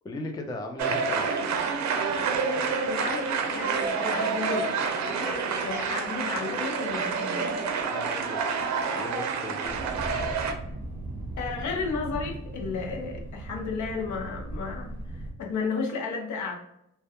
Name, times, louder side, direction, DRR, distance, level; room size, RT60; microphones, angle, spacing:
voice 1, 0.0-1.3 7.9-8.4 8.9-9.8 13.0-13.2, left 2 dB, 15° left, 3 dB, 0.3 m, -37 dB
sound 1, 0.8-10.5, right 5 dB, 65° right, 0.5 m, -28 dB
voice 2, 2.8-4.7 5.1-7.6 11.4-16.6, left 4 dB, 70° left, 2 dB, 0.7 m, -33 dB
Thunder, 9.6-15.3, right 2 dB, 5° right, 1.1 m, -38 dB
2.2 x 2.2 x 2.8 m, 0.82 s
cardioid pair, 90°, 30 cm